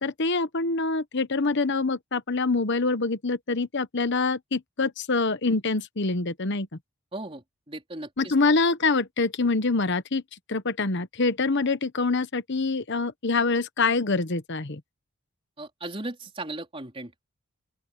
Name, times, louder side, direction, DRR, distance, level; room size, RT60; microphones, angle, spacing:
voice 1, 0.0-6.7 8.2-10.2 10.5-14.8, left 3 dB, 55° left, 1.1 m, -25 dB
voice 2, 7.1-8.3 15.6-17.2, right 2 dB, 25° right, 4.0 m, -37 dB
open air
head